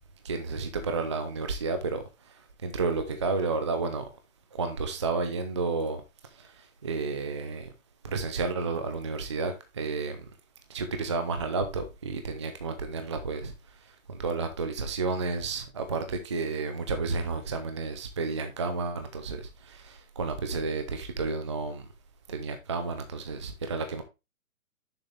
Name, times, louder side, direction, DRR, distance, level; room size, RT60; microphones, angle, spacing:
voice 1, 0.2-4.1 4.5-6.0 6.3-7.7 8.0-10.3 10.7-13.5 14.1-21.9 22.3-24.0, right 4 dB, 20° right, 0.5 m, -31 dB
6.8 x 6.1 x 3.2 m
hypercardioid pair, 160°, 41 cm